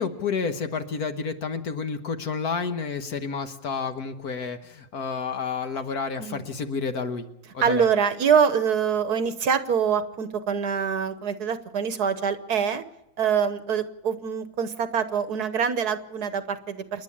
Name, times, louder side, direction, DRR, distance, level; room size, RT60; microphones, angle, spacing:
voice 1, 0.0-7.3 7.5-7.9, left 5 dB, 55° left, 7 dB, 1.6 m, -30 dB
voice 2, 7.6-12.8 13.2-17.0, right 7 dB, 60° right, 11 dB, 1.4 m, -25 dB
28.0 x 11.0 x 8.7 m, 0.86 s
omnidirectional pair, 2.0 m